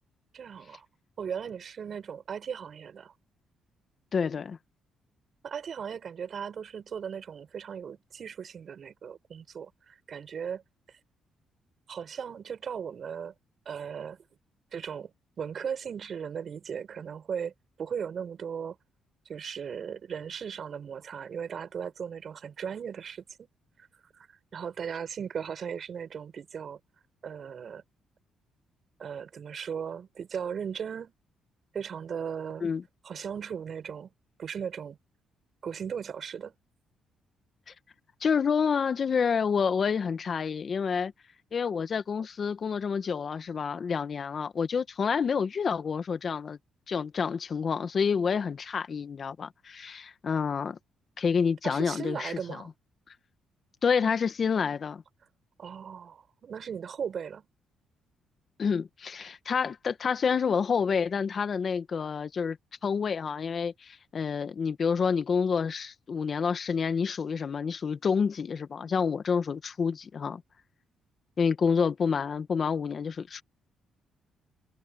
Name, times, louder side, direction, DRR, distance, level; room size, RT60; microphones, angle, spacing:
voice 1, 0.3-0.8 1.2-3.1 5.4-10.6 11.9-13.3 13.6-14.2 14.7-17.5 17.8-18.8 19.3-23.5 24.2-26.8 27.2-27.8 29.0-31.1 31.7-32.6 33.0-34.1 34.4-35.0 35.6-36.5 51.6-52.7 55.6-57.4, right 7 dB, 55° right, 6.3 m, -37 dB
voice 2, 4.1-4.6 32.6-32.8 38.2-41.1 41.5-46.6 46.9-50.8 51.2-52.6 53.8-55.0 58.6-62.6 62.8-70.4 71.4-73.4, left 6 dB, 45° left, 1.3 m, -28 dB
cardioid pair, 90°, 0 cm